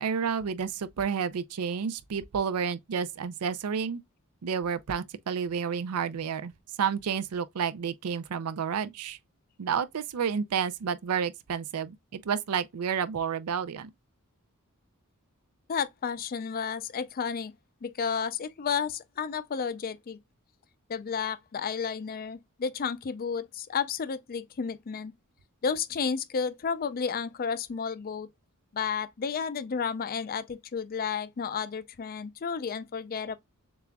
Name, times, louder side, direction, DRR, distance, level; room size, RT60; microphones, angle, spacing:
voice 1, 0.0-4.0 4.4-6.5 6.8-9.2 9.6-13.9, right 7 dB, 85° right, 0.4 m, -30 dB
voice 2, 15.7-17.5 17.8-20.2 20.9-25.1 25.6-28.3 28.7-33.4, left 6 dB, 40° left, 0.4 m, -32 dB
6.9 x 2.4 x 2.2 m
head